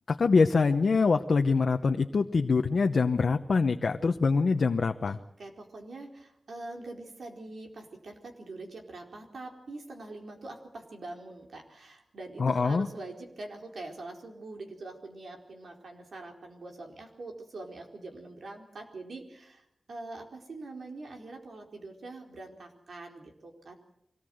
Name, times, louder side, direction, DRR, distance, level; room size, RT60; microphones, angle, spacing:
voice 1, 0.1-5.2 12.4-12.9, left 4 dB, 70° left, 5 dB, 0.9 m, -24 dB
voice 2, 5.0-23.7, right 2 dB, 90° right, 2 dB, 4.3 m, -44 dB
24.0 x 19.0 x 7.9 m, 0.77 s
wide cardioid pair, 110°, 0 cm